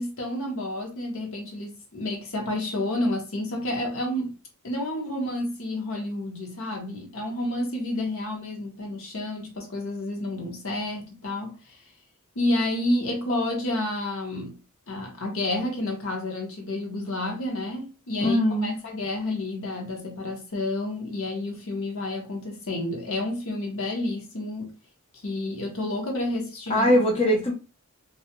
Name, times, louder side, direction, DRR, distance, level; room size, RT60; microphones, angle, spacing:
voice 1, 0.0-4.4 4.6-11.8 12.3-14.6 14.9-24.7 25.2-26.9 27.3-27.4, left 1 dB, 65° left, 0.9 m, -30 dB
voice 2, 18.2-18.7 26.7-27.5, equal, 25° left, 0.5 m, -21 dB
2.4 x 2.1 x 2.8 m
head